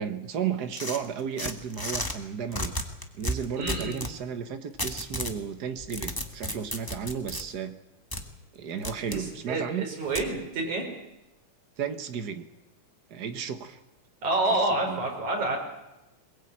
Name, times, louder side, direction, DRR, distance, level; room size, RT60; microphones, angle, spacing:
voice 1, 0.0-2.7 3.1-7.7 8.5-9.9 11.8-12.5 13.1-13.8 14.8-15.0, right 7 dB, 80° right, 9 dB, 0.9 m, -33 dB
sound 1, 0.7-2.1 2.5-4.1 4.8-5.4 5.8-7.4 8.1-8.2 8.8-9.2 10.1-10.3, left 1 dB, 15° left, 0.7 m, -33 dB
voice 2, 3.6-4.0 9.1-10.8 14.2-15.6, right 2 dB, 60° right, 1 dB, 6.7 m, -28 dB
22.0 x 21.5 x 8.8 m, 0.96 s
omnidirectional pair, 3.7 m